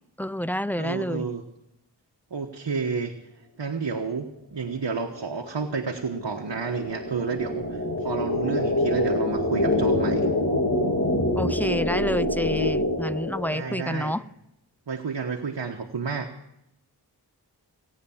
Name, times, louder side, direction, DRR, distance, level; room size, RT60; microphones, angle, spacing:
voice 1, 0.2-1.3 11.3-14.2, equal, 5° left, 17 dB, 0.5 m, -29 dB
voice 2, 0.8-1.4 2.3-3.1 3.6-10.3 13.5-14.2 14.9-16.3, right 5 dB, 70° right, 2 dB, 1.3 m, -30 dB
sound 1, 5.0-13.9, left 1 dB, 40° left, 2.7 m, -26 dB
18.0 x 9.4 x 7.1 m, 0.83 s
cardioid pair, 40°, 43 cm